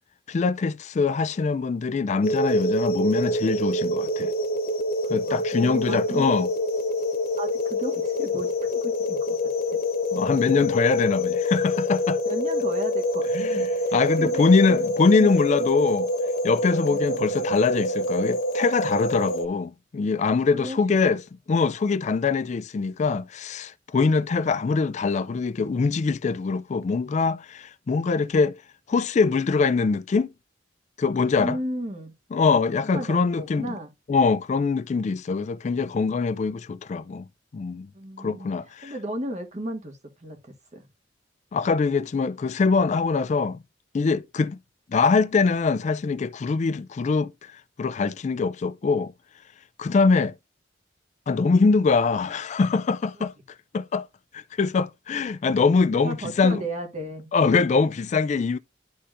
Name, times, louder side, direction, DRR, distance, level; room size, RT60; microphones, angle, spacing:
voice 1, 0.3-4.3 5.1-6.5 10.1-12.2 13.3-13.7 13.9-16.1 16.4-21.2 21.5-28.6 28.9-30.3 31.0-31.6 32.3-33.8 34.1-37.3 37.5-37.9 38.2-38.9 41.5-43.6 43.9-44.6 44.9-49.1 49.8-50.3 51.3-53.3 53.7-54.1 54.3-56.6 57.3-58.6, left 4 dB, 40° left, 0.3 m, -23 dB
sound 1, 2.2-19.4, left 1 dB, 60° left, 1.2 m, -26 dB
voice 2, 5.3-6.3 7.4-8.5 8.8-9.4 12.2-14.8 15.2-15.4 16.8-17.2 20.6-21.0 31.3-32.1 32.9-33.9 37.9-38.5 38.8-40.8 56.0-57.3, right 1 dB, 40° right, 1.8 m, -34 dB
11.5 x 4.2 x 2.5 m
head